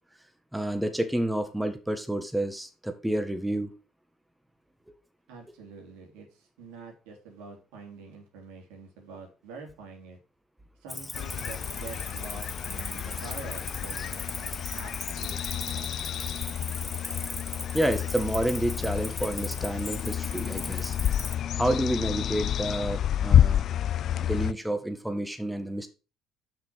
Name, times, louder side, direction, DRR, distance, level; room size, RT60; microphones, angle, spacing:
voice 1, 0.5-3.7 17.7-21.0 21.6-23.6 24.2-25.9, right 1 dB, 5° right, 7 dB, 1.7 m, -29 dB
voice 2, 5.3-10.2 10.8-16.0, right 4 dB, 80° right, 1 dB, 3.2 m, -46 dB
Cricket, 10.9-21.3, left 2 dB, 15° left, 1.6 m, -39 dB
sound 1, 11.1-24.5, left 10 dB, 60° left, 0.4 m, -29 dB
7.5 x 6.0 x 5.8 m, 0.33 s
hypercardioid pair, 65°, 0 cm